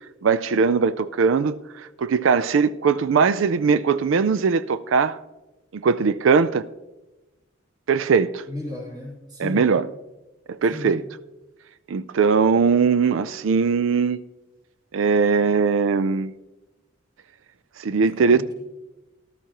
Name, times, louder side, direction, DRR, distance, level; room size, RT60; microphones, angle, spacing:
voice 1, 0.2-5.2 5.7-6.6 7.9-8.4 9.4-9.9 10.5-11.0 11.9-14.2 14.9-16.3 17.8-18.4, right 5 dB, 75° right, 0.4 m, -20 dB
voice 2, 8.5-9.7 10.6-10.9 17.9-18.5, left 2 dB, 20° right, 3.1 m, -35 dB
14.0 x 12.5 x 2.9 m
head